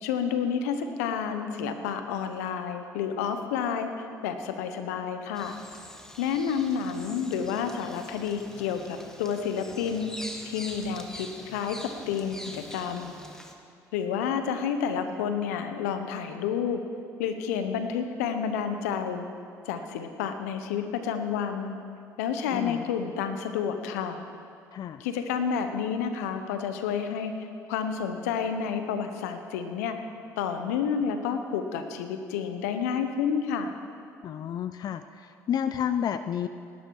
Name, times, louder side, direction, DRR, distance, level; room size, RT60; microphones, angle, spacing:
voice 1, 0.0-5.6 6.2-10.1 10.4-13.1 13.9-16.8 17.2-19.3 19.6-21.8 22.2-24.2 25.0-27.4 27.7-30.0 30.4-33.7, left 7 dB, 85° left, 8 dB, 1.0 m, -30 dB
Bird vocalization bird call bird song, 5.3-13.5, equal, 5° left, 1.9 m, -44 dB
voice 2, 22.5-22.9 24.7-25.0 34.2-36.5, left 9 dB, 50° left, 11 dB, 0.5 m, -31 dB
18.5 x 11.5 x 4.8 m, 2.4 s
hypercardioid pair, 65°, 8 cm